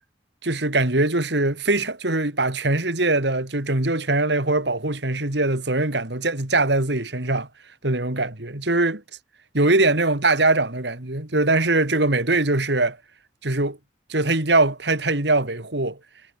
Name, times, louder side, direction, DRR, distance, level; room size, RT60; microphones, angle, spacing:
voice 1, 0.4-7.5 7.8-9.0 9.5-13.0 13.4-13.8 14.1-16.0, right 2 dB, 70° right, 2.9 m, -22 dB
head